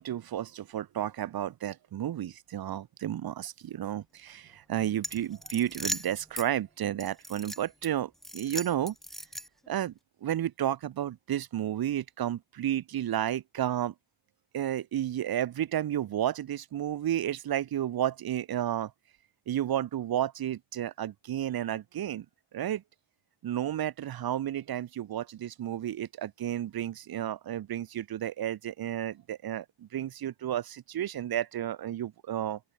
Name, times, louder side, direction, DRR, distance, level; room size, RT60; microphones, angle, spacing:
voice 1, 0.0-8.9 9.7-9.9 10.2-13.9 14.5-18.9 19.5-22.3 22.5-22.8 23.4-32.6, right 11 dB, 60° right, 0.8 m, -32 dB
sound 1, 5.0-6.5 7.0-7.9 8.2-9.7, equal, ahead, 2.7 m, -38 dB
open air
wide cardioid pair, 120°, 41 cm